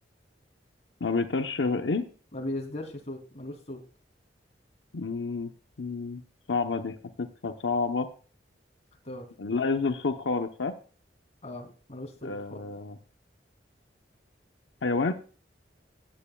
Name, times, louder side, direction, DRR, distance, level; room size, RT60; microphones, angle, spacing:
voice 1, 1.0-2.0 4.9-5.5 5.8-6.2 6.5-8.1 9.4-10.7 12.2-13.0 14.8-15.1, left 4 dB, 85° left, 6 dB, 0.8 m, -29 dB
voice 2, 2.3-3.8 9.0-9.3 11.4-12.6, left 1 dB, 40° left, 1 dB, 2.9 m, -38 dB
17.0 x 9.3 x 2.3 m, 0.38 s
head